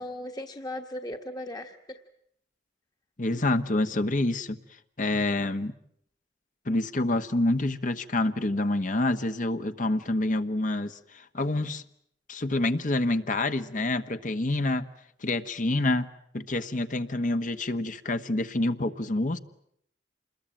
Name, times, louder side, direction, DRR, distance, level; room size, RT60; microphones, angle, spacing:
voice 1, 0.0-2.0, left 1 dB, 25° left, 4 dB, 1.4 m, -37 dB
voice 2, 3.2-4.6 5.0-5.7 6.6-11.8 12.3-14.8 15.2-16.1 16.3-19.4, left 2 dB, 50° left, 9 dB, 1.3 m, -27 dB
27.5 x 21.5 x 9.0 m, 0.71 s
head